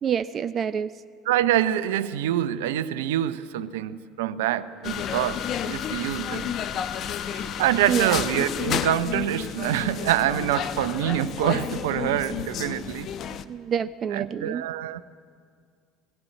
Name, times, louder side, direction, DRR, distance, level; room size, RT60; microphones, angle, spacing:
voice 1, 0.0-0.9 7.9-8.2 13.5-14.6, right 8 dB, 35° right, 13 dB, 0.5 m, -27 dB
voice 2, 1.2-6.5 7.3-13.1 14.1-15.0, right 12 dB, 70° right, 14 dB, 0.7 m, -26 dB
sound 1, 4.8-13.4, left 9 dB, 45° left, 0.8 m, -31 dB
19.0 x 16.5 x 8.8 m, 2.1 s
figure-of-eight pair, 65°, 0 cm